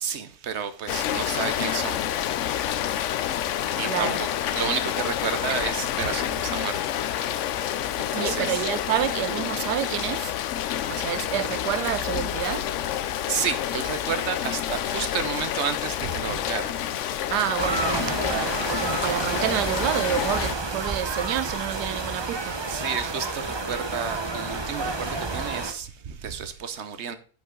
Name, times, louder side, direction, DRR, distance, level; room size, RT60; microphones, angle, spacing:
voice 1, 0.0-2.0 3.8-4.3 4.5-6.7 7.6-7.7 8.0-8.6 13.3-16.7 22.7-27.2, right 7 dB, 50° right, 1.0 m, -31 dB
Rain, 0.9-20.5, left 11 dB, 70° left, 0.7 m, -28 dB
voice 2, 3.8-4.2 5.5-5.6 8.1-10.4 10.9-12.7 17.3-22.8, right 12 dB, 90° right, 1.2 m, -29 dB
sound 1, 17.6-25.7, right 3 dB, 30° right, 0.5 m, -30 dB
9.8 x 5.7 x 3.8 m
omnidirectional pair, 1.7 m